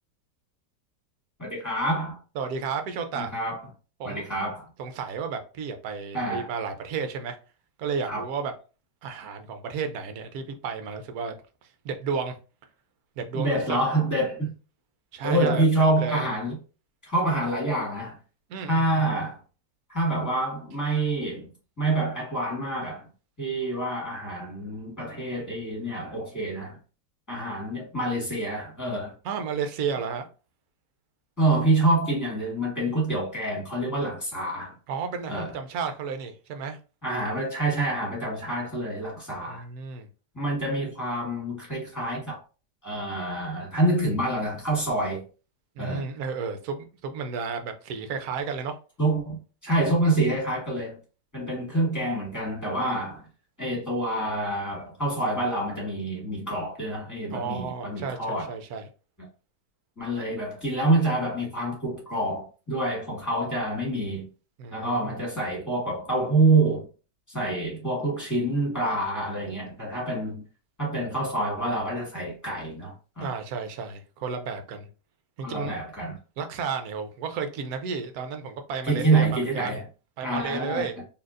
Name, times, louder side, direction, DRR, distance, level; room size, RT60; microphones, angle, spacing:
voice 1, 1.4-2.2 3.1-3.7 4.0-4.7 6.1-6.5 8.1-8.2 13.3-14.5 15.2-16.6 17.0-18.2 18.7-19.4 19.9-21.5 21.8-23.1 23.4-26.8 27.3-29.1 31.4-34.7 35.3-35.6 37.0-39.6 40.3-42.4 42.8-45.2 45.8-46.0 49.0-49.4 49.6-51.0 51.3-53.2 53.6-58.5 60.0-64.3 64.7-66.9 67.3-70.4 70.8-73.3 75.4-76.2 78.8-79.8 80.2-81.0, right 2 dB, 10° left, 1.7 m, -27 dB
voice 2, 2.4-3.3 4.0-4.3 4.8-7.4 7.8-8.5 9.0-11.3 11.8-12.4 13.2-13.8 15.1-16.2 18.5-19.0 29.2-30.3 34.9-36.8 39.5-40.1 45.8-48.8 57.3-58.9 64.6-65.2 73.2-74.9 75.4-75.8 76.4-79.8 80.2-80.9, right 5 dB, 65° right, 1.0 m, -32 dB
4.2 x 2.8 x 2.5 m
omnidirectional pair, 1.9 m